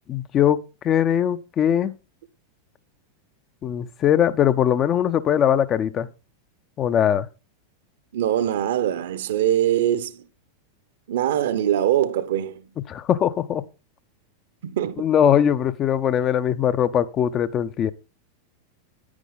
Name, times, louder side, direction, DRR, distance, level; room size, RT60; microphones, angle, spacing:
voice 1, 0.1-2.0 3.6-6.1 6.8-7.3 12.9-13.7 15.0-17.9, left 9 dB, 30° left, 0.7 m, -21 dB
voice 2, 8.1-10.2 11.1-12.6 14.6-15.1, right 11 dB, 55° right, 1.0 m, -23 dB
10.0 x 9.8 x 3.9 m
figure-of-eight pair, 90°, 0 cm